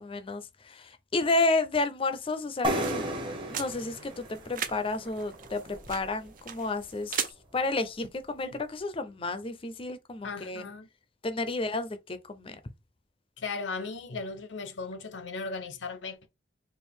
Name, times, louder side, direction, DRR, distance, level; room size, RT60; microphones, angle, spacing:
voice 1, 0.0-3.0 3.5-7.2 7.5-10.7 11.2-12.6, left 2 dB, 30° left, 0.5 m, -31 dB
sound 1, 2.3-7.3, right 8 dB, 50° right, 0.6 m, -39 dB
sound 2, 2.6-6.3, equal, 30° right, 1.1 m, -34 dB
voice 2, 10.2-10.9 13.4-16.3, left 4 dB, 90° left, 0.8 m, -37 dB
4.4 x 2.5 x 3.5 m
head